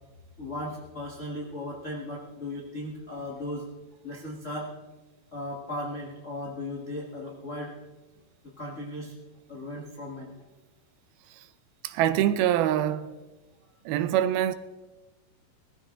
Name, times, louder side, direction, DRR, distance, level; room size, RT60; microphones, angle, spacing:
voice 1, 0.4-3.7 4.0-4.7 5.3-7.7 8.4-9.1 9.5-10.3, left 1 dB, 65° left, 0.7 m, -36 dB
voice 2, 11.8-13.1 13.9-14.5, right 11 dB, 85° right, 2.6 m, -24 dB
19.0 x 14.5 x 3.8 m
omnidirectional pair, 4.3 m